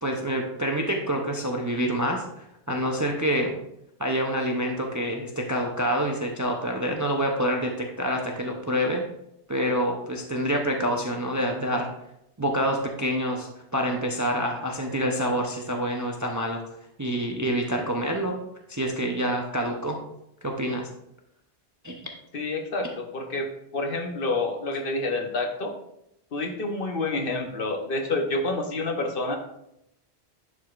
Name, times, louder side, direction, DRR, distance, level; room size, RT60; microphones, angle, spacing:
voice 1, 0.0-3.5 4.0-9.0 9.5-11.9 12.4-16.6 17.0-18.4 18.7-20.0 20.4-20.9 21.8-22.0, equal, 20° right, 2 dB, 0.5 m, -27 dB
voice 2, 22.3-23.5 23.7-25.7 26.3-29.4, left 2 dB, 55° left, 4 dB, 1.0 m, -28 dB
10.5 x 4.8 x 2.4 m, 0.79 s
omnidirectional pair, 1.1 m